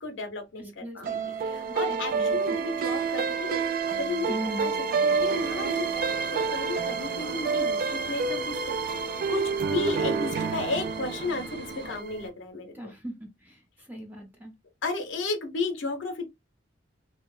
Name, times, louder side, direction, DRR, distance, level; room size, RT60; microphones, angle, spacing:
voice 1, 0.0-3.6 4.0-9.0 9.3-12.9 14.8-16.2, left 3 dB, 80° left, 0.6 m, -33 dB
voice 2, 0.8-1.2 1.6-2.6 4.3-4.7 12.7-13.1 13.4-14.5, right 1 dB, 10° right, 0.6 m, -39 dB
sound 1, 1.0-12.3, right 5 dB, 50° right, 0.3 m, -29 dB
sound 2, 5.1-12.0, equal, 70° right, 0.8 m, -43 dB
2.7 x 2.0 x 2.3 m
head